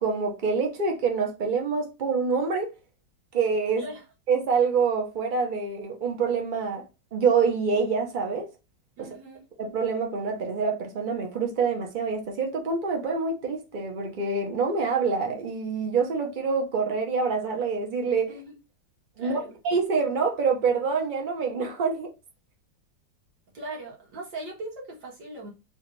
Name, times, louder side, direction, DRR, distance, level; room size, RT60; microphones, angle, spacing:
voice 1, 0.0-2.7 3.3-3.8 4.3-6.8 7.1-8.5 9.6-18.3 19.2-19.4 19.6-22.1, right 5 dB, 35° right, 0.8 m, -26 dB
voice 2, 9.0-9.4 18.3-18.5 19.2-19.6 23.5-25.5, right 2 dB, 75° right, 2.2 m, -39 dB
4.2 x 2.5 x 3.1 m
omnidirectional pair, 2.0 m